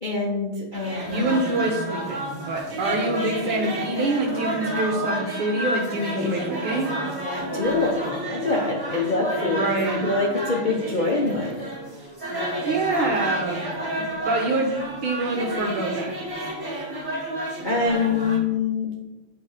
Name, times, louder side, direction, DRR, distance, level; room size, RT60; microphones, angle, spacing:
voice 1, 0.0-1.2 6.2-6.3 7.3-9.6 10.0-11.5 17.6-19.0, left 3 dB, 80° left, -2 dB, 0.4 m, -25 dB
sound 1, 0.7-18.4, right 1 dB, 10° right, 1.4 m, -30 dB
voice 2, 1.1-6.9 9.5-10.0 12.7-13.6 14.2-14.7 15.0-16.1, right 2 dB, 75° right, -2 dB, 1.8 m, -25 dB
8.7 x 3.3 x 4.9 m, 1.1 s
omnidirectional pair, 2.4 m